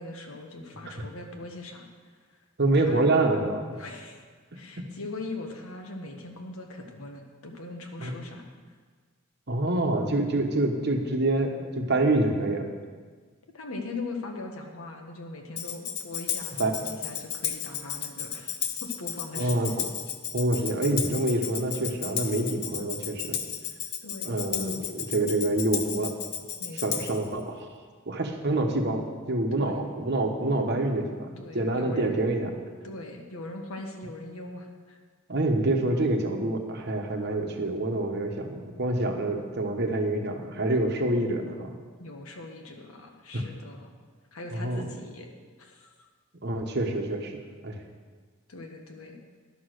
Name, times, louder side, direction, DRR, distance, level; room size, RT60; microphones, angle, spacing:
voice 1, 0.0-2.4 2.7-3.1 3.8-4.2 4.5-8.8 13.5-19.8 24.0-24.5 26.6-27.0 29.5-29.8 31.4-32.1 32.8-35.0 42.0-43.9 44.3-45.3 45.6-45.9 48.5-49.2, left 2 dB, 85° left, 3 dB, 1.3 m, -41 dB
voice 2, 2.6-3.8 4.8-4.9 8.0-8.1 9.5-12.7 16.6-16.7 19.4-19.7 20.3-23.4 24.2-26.1 26.8-27.7 28.1-31.3 31.5-32.5 35.3-41.8 43.3-43.4 44.5-44.9 46.4-47.3 47.6-47.8, right 2 dB, 50° right, 4 dB, 1.1 m, -26 dB
Tambourine, 15.6-27.3, left 9 dB, 50° left, 0.7 m, -34 dB
11.0 x 6.3 x 6.5 m, 1.5 s
head